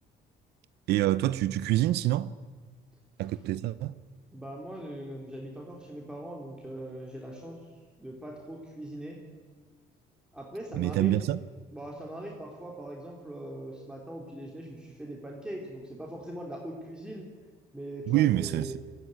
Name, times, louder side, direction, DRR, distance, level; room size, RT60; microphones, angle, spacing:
voice 1, 0.9-2.3 3.2-4.0 10.7-11.4 18.1-18.8, right 14 dB, 75° right, 0.7 m, -26 dB
voice 2, 4.3-7.6 8.0-9.2 10.3-11.2 11.7-17.3 17.7-18.7, right 1 dB, 5° right, 3.3 m, -41 dB
19.0 x 15.0 x 9.7 m
cardioid pair, 110°, 17 cm